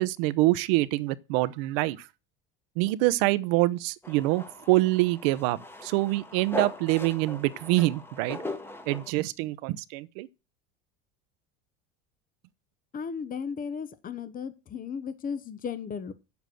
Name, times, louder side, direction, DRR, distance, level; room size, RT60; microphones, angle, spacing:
voice 1, 0.0-2.0 2.8-8.4 8.9-10.3, right 19 dB, 80° right, 0.9 m, -25 dB
sound 1, 4.0-9.1, left 2 dB, 10° left, 1.4 m, -39 dB
voice 2, 12.9-16.1, left 6 dB, 30° left, 1.0 m, -35 dB
8.1 x 7.2 x 7.7 m
supercardioid pair, 115°, 29 cm